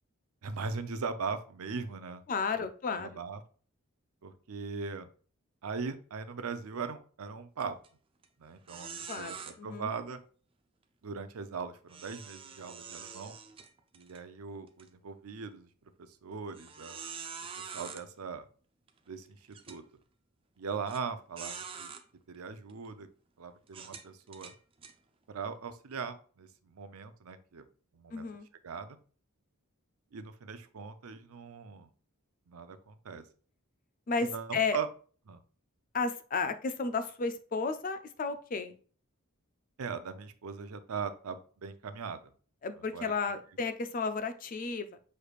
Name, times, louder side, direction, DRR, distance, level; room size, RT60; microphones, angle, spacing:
voice 1, 0.4-2.2 2.6-2.7 3.0-3.4 4.2-5.1 5.6-7.8 8.4-10.2 11.0-13.4 13.9-15.7 16.0-17.0 17.6-18.5 19.1-19.8 20.6-21.9 22.3-23.1 23.4-24.5 25.3-27.7 27.9-28.3 28.6-29.0 30.1-31.9 32.5-33.2 34.2-34.9 35.3-35.4 39.8-42.3 42.9-43.1, right 5 dB, 90° right, 10 dB, 0.6 m, -40 dB
voice 2, 2.3-3.2 9.1-9.3 9.6-9.9 28.1-28.5 34.1-34.8 35.9-38.8 42.6-44.9, left 4 dB, 40° left, 9 dB, 0.4 m, -33 dB
sound 1, 7.6-7.9 8.2-8.3 8.7-9.5 11.9-14.2 14.7-14.8 15.5-15.6 16.5-18.0 18.9-19.0 19.5-19.8 20.9-21.0 21.4-22.0 22.7-22.9 23.7-24.9, right 6 dB, 25° right, 0.4 m, -45 dB
6.4 x 3.3 x 2.4 m, 0.41 s
head